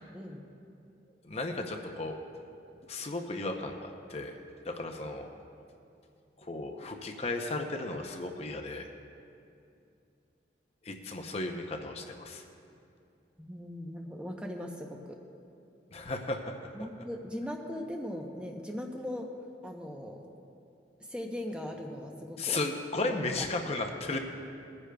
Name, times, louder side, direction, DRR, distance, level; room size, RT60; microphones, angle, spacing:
voice 1, 0.1-0.4 13.4-15.2 16.7-19.3 19.6-20.3 21.1-22.6 22.9-23.1, left 1 dB, 5° right, 1 dB, 0.7 m, -39 dB
voice 2, 1.2-2.2 2.9-4.4 4.7-5.3 6.4-8.9 10.8-12.4 15.9-16.4 22.4-24.2, left 2 dB, 35° left, 3 dB, 0.6 m, -35 dB
21.5 x 9.7 x 2.3 m, 2.6 s
head